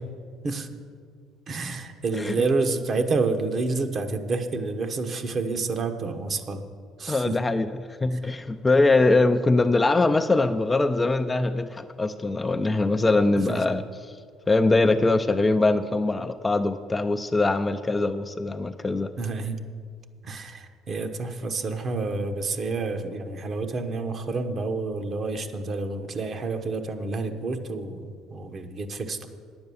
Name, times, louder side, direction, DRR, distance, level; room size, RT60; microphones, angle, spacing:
voice 1, 1.5-6.6 7.0-7.4 8.1-8.2 13.3-13.6 19.2-19.6 20.2-29.3, right 3 dB, 40° right, 6 dB, 1.1 m, -29 dB
voice 2, 7.1-14.2 14.5-19.1, left 2 dB, 15° left, 8 dB, 0.4 m, -22 dB
9.9 x 7.9 x 7.0 m, 2.1 s
cardioid pair, 100°, 0 cm